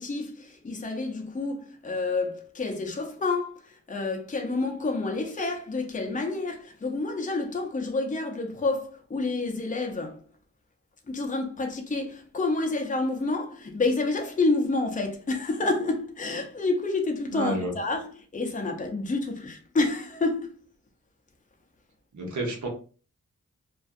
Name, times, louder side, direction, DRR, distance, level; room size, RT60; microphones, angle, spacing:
voice 1, 0.0-10.2 11.1-20.5, left 3 dB, 25° left, 0.5 m, -29 dB
voice 2, 17.3-17.7 22.1-22.7, right 1 dB, 80° right, 0.9 m, -30 dB
2.5 x 2.3 x 2.4 m
wide cardioid pair, 55°, 29 cm